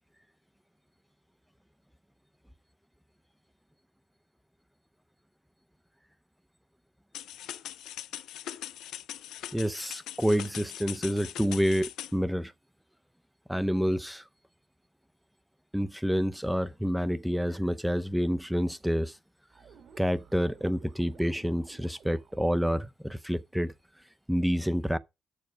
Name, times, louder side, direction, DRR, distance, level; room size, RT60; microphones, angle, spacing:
sound 1, 7.1-12.1, left 12 dB, 85° left, 0.6 m, -41 dB
voice 1, 9.5-12.5 13.5-14.2 15.7-19.2 20.0-23.7 24.3-25.0, equal, ahead, 0.5 m, -28 dB
sound 2, 19.5-22.6, right 6 dB, 60° right, 1.8 m, -55 dB
6.9 x 6.4 x 5.0 m
cardioid pair, 90°, 0 cm